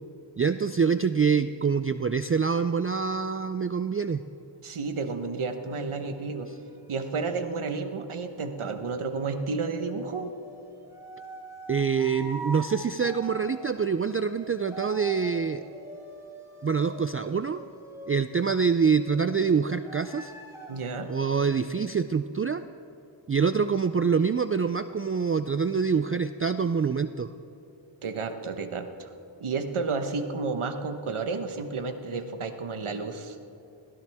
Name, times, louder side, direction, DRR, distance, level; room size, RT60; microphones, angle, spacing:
voice 1, 0.4-4.2 11.7-15.7 16.6-17.6 18.1-20.3 21.1-22.6 23.3-27.3, right 6 dB, 30° right, 11 dB, 0.4 m, -25 dB
voice 2, 4.6-6.5 6.9-10.3 20.7-21.1 28.0-29.1 29.4-33.4, right 4 dB, 75° right, 7 dB, 1.2 m, -31 dB
sound 1, 5.2-8.0 8.9-18.4 18.9-21.6, right 2 dB, 5° right, 3.7 m, -45 dB
21.5 x 16.0 x 3.5 m, 2.9 s
wide cardioid pair, 70°, 50 cm